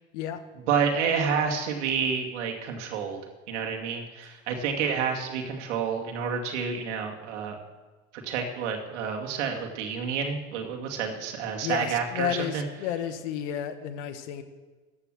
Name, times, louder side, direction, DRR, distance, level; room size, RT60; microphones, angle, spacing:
voice 1, 0.7-3.2 3.5-7.6 8.2-12.6, right 6 dB, 80° right, 2 dB, 2.3 m, -29 dB
voice 2, 11.6-14.4, left 10 dB, 75° left, 9 dB, 1.5 m, -32 dB
14.5 x 9.6 x 6.4 m, 1.3 s
hypercardioid pair, 75°, 35 cm